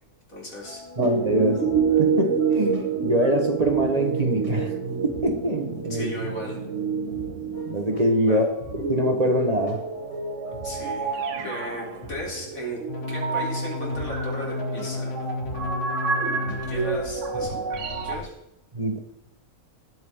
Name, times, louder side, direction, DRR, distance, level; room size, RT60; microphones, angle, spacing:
voice 1, 0.3-0.8 5.9-6.6 8.2-8.4 10.6-15.2 16.6-17.6 18.0-18.3, equal, 85° left, -2 dB, 4.1 m, -36 dB
sound 1, 0.6-17.4, right 1 dB, 25° left, 3.5 m, -43 dB
voice 2, 1.0-1.7 2.0-4.7 5.0-6.1 7.7-8.4 8.9-9.8 18.7-19.0, right 1 dB, 30° right, 4 dB, 1.5 m, -23 dB
sound 2, 1.0-8.1 8.6-18.2, right 5 dB, 65° right, 1.4 m, -28 dB
sound 3, 12.9-17.0 17.7-18.2, left 2 dB, 50° left, 1.6 m, -32 dB
20.0 x 7.8 x 3.8 m, 0.83 s
omnidirectional pair, 1.4 m